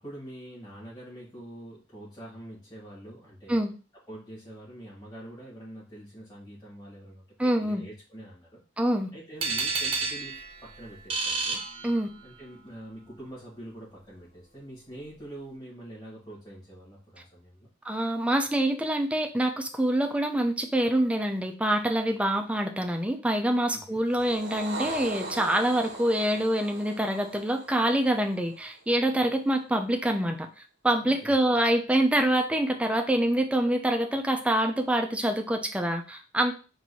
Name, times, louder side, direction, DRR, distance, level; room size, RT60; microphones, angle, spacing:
voice 1, 0.0-3.6 4.1-7.2 7.5-8.6 9.1-11.6 12.2-17.7 23.7-24.0 31.0-31.3, right 1 dB, 20° left, -8 dB, 2.2 m, -45 dB
voice 2, 7.4-7.8 8.8-9.1 11.8-12.1 17.8-30.5 30.8-36.5, right 1 dB, 5° right, 4 dB, 0.5 m, -26 dB
sound 1, 9.4-12.4, right 4 dB, 30° right, 0.8 m, -31 dB
sound 2, 24.1-28.7, right 3 dB, 65° right, 0.8 m, -39 dB
4.5 x 2.7 x 4.1 m, 0.35 s
head